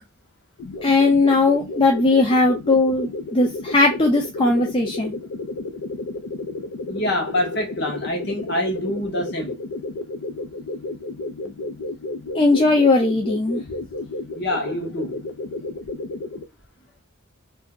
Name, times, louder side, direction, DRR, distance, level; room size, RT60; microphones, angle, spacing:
sound 1, 0.6-16.4, left 2 dB, 85° left, 0.4 m, -32 dB
voice 1, 0.8-5.1 12.3-13.6, left 3 dB, 25° left, 0.4 m, -18 dB
voice 2, 6.9-9.6 14.3-15.3, left 1 dB, 55° left, 1.0 m, -26 dB
2.6 x 2.1 x 3.6 m
head